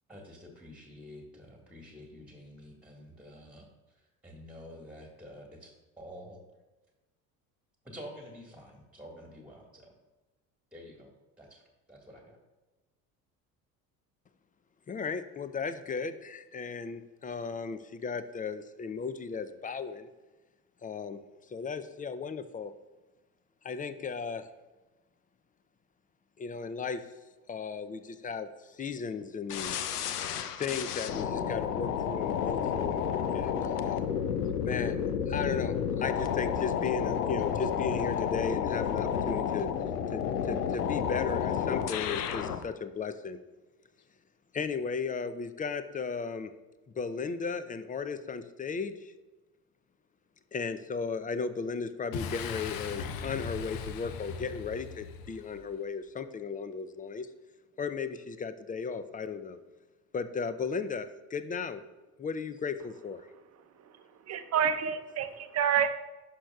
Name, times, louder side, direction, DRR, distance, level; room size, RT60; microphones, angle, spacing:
voice 1, 0.1-6.4 7.8-9.9 10.7-11.1 11.4-11.6 11.9-12.4, equal, 5° right, 1 dB, 1.6 m, -49 dB
voice 2, 14.9-20.1 20.8-21.2 21.5-22.7 23.6-24.5 26.4-27.0 27.5-29.8 30.6-34.0 34.6-35.0 35.3-39.7 40.1-43.4 44.5-46.5 47.0-49.1 50.5-57.3 57.8-59.6 60.1-61.8 62.2-63.3, left 5 dB, 20° left, 11 dB, 0.5 m, -35 dB
sound 1, 29.5-42.6, left 8 dB, 85° left, 0.6 m, -31 dB
Boom, 52.1-55.7, left 6 dB, 50° left, 0.8 m, -39 dB
voice 3, 64.3-65.9, right 8 dB, 35° right, 9 dB, 0.7 m, -28 dB
11.0 x 6.4 x 2.3 m, 1.2 s
hypercardioid pair, 65°, 45 cm